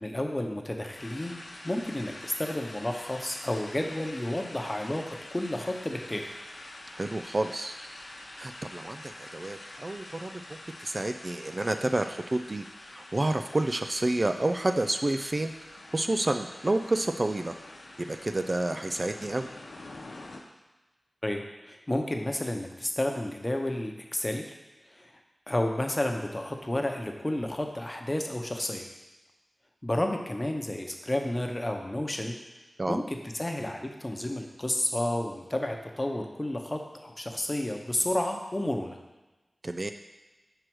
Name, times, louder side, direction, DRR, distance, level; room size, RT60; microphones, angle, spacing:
voice 1, 0.0-1.4 1.6-6.3 21.2-24.5 24.9-25.1 25.5-28.9 29.8-32.4 32.9-39.0, left 1 dB, 25° left, 3 dB, 0.9 m, -31 dB
sound 1, 1.0-20.4, left 2 dB, 80° left, 0.9 m, -46 dB
voice 2, 6.9-7.8 8.4-17.5 18.0-19.5 32.8-33.0 39.6-39.9, right 2 dB, 40° right, 7 dB, 0.4 m, -30 dB
4.9 x 4.6 x 6.1 m, 1.1 s
cardioid pair, 45°, 0 cm